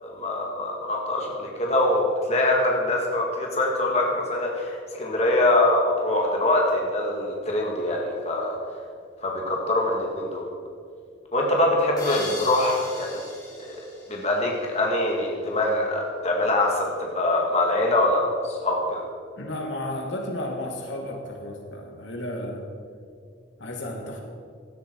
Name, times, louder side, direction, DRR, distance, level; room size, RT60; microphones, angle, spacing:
voice 1, 0.0-8.6 9.2-10.4 11.3-13.2 14.1-19.0, left 1 dB, 35° left, -1 dB, 2.1 m, -24 dB
sound 1, 12.0-14.8, left 2 dB, 20° left, 3.3 m, -37 dB
voice 2, 19.4-22.6 23.6-24.2, left 1 dB, 70° left, 1 dB, 2.3 m, -33 dB
17.0 x 12.5 x 4.7 m, 2.3 s
head